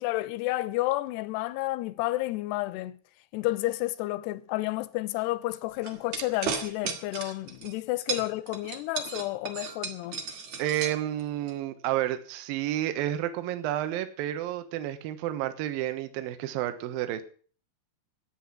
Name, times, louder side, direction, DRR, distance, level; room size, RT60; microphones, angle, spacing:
voice 1, 0.0-3.0 3.3-10.2, left 18 dB, 80° left, 2.7 m, -31 dB
sound 1, 5.8-7.8 8.1-11.5, right 6 dB, 50° right, 2.7 m, -34 dB
voice 2, 10.6-17.2, right 13 dB, 65° right, 2.7 m, -30 dB
14.0 x 9.4 x 7.5 m
omnidirectional pair, 5.1 m